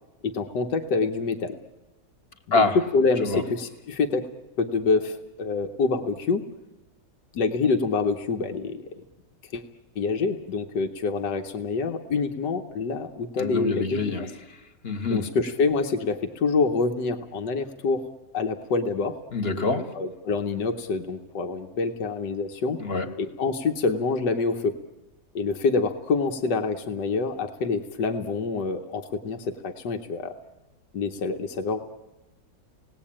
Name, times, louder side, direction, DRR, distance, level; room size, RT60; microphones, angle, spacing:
voice 1, 0.2-1.6 2.5-4.3 4.6-6.4 7.3-9.0 9.5-9.6 10.0-14.3 15.1-18.1 18.3-19.2 19.9-22.8 23.2-24.8 25.4-30.3 30.9-31.8, left 4 dB, 80° left, 4 dB, 1.7 m, -26 dB
voice 2, 13.4-14.3 14.8-15.2 19.3-19.9 22.8-23.1, left 3 dB, 35° left, 7 dB, 1.8 m, -25 dB
29.0 x 19.0 x 8.8 m, 1.1 s
omnidirectional pair, 1.9 m